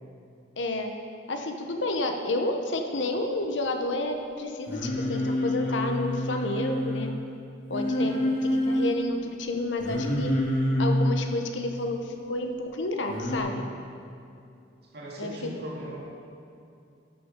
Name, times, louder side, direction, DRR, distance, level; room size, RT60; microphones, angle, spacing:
voice 1, 0.6-0.9 1.3-7.1 7.7-8.2 8.4-10.3 10.8-13.6 15.2-15.3, left 2 dB, 75° left, 4 dB, 1.0 m, -30 dB
Singing, 4.7-7.1 7.7-8.9 9.8-11.1 13.1-13.4, left 1 dB, 40° left, 2.4 m, -27 dB
voice 2, 7.9-8.3 14.9-16.0, right 1 dB, 55° right, -4 dB, 2.2 m, -39 dB
13.0 x 6.1 x 5.2 m, 2.6 s
head